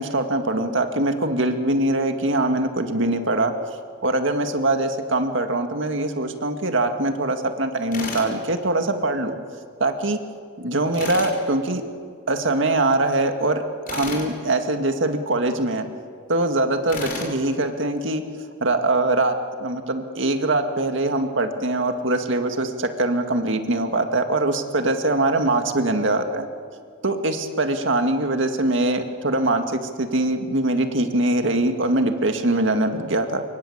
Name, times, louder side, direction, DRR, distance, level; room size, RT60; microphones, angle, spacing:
voice 1, 0.0-3.5 4.0-9.4 9.8-10.2 10.6-11.8 12.3-15.9 16.3-18.2 18.6-19.4 19.6-26.5 27.0-33.4, right 2 dB, 65° right, 6 dB, 2.1 m, -22 dB
Tools, 7.9-8.3 10.9-11.4 13.9-14.3 16.9-17.3, left 3 dB, 45° left, 4.7 m, -31 dB
26.0 x 23.5 x 8.6 m, 2.2 s
head